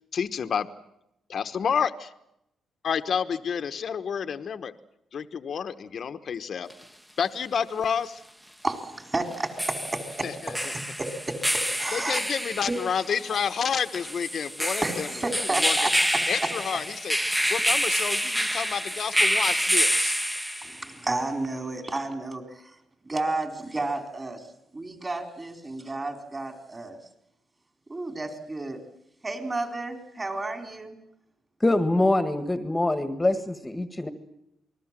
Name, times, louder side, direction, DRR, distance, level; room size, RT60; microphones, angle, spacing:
voice 1, 0.1-0.7 1.3-2.1 2.8-4.7 5.1-6.7 7.2-8.2 10.2-10.6 11.9-15.1 15.6-15.8 16.3-17.2 17.5-20.2, left 7 dB, 55° left, 9 dB, 1.2 m, -29 dB
sound 1, 6.7-6.8 9.3-20.9, equal, 5° right, 1.1 m, -27 dB
voice 2, 8.6-12.2 12.7-12.8 14.8-16.5 17.2-17.5 20.6-22.8 23.0-24.5 24.7-27.0 27.9-28.8 29.2-31.0, right 2 dB, 20° right, 5 dB, 4.2 m, -32 dB
voice 3, 31.6-34.1, left 2 dB, 15° left, 9 dB, 1.6 m, -24 dB
28.0 x 20.5 x 7.5 m, 0.82 s
cardioid pair, 110°, 0 cm